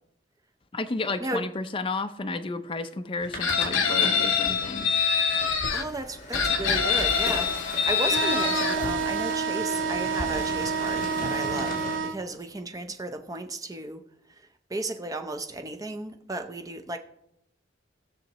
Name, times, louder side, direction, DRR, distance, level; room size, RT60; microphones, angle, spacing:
voice 1, 0.7-5.0, left 3 dB, 25° left, 0.5 m, -32 dB
sound 1, 3.2-12.0, left 1 dB, 45° left, 2.4 m, -36 dB
Chicken rooster, 3.4-5.8 6.3-8.8, left 6 dB, 75° left, 0.8 m, -25 dB
voice 2, 5.7-14.0 14.7-17.0, right 2 dB, 20° right, 0.6 m, -34 dB
sound 2, 8.0-12.2, right 5 dB, 75° right, 0.6 m, -29 dB
19.0 x 6.4 x 2.9 m
head